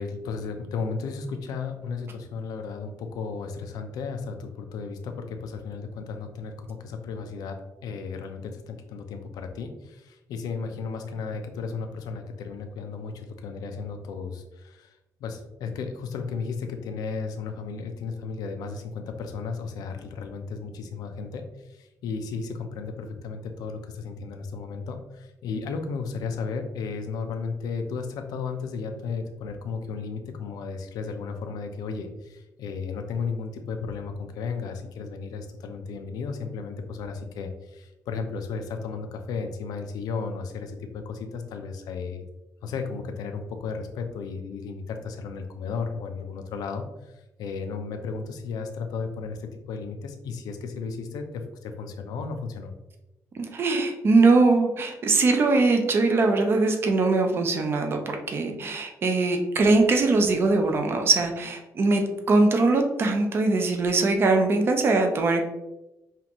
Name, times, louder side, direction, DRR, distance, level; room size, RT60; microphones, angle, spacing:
voice 1, 0.0-42.3 42.6-52.7, left 5 dB, 90° left, 6 dB, 0.6 m, -34 dB
voice 2, 53.3-65.4, right 3 dB, 40° right, 4 dB, 0.6 m, -21 dB
5.5 x 2.5 x 2.9 m, 0.96 s
cardioid pair, 150°, 6 cm